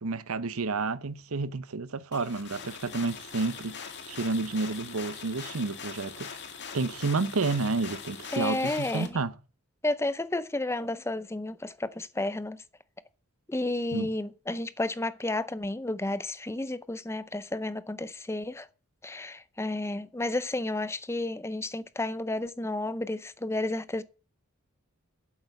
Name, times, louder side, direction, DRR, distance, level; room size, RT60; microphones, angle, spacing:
voice 1, 0.0-3.8 4.1-6.3 6.7-9.3 13.9-14.1, right 3 dB, 75° right, 0.8 m, -30 dB
sound 1, 2.1-9.1, left 6 dB, 55° left, 1.9 m, -42 dB
voice 2, 8.3-9.2 9.8-12.6 13.5-18.7 19.0-24.0, left 2 dB, 10° left, 0.6 m, -32 dB
8.7 x 8.1 x 7.0 m
head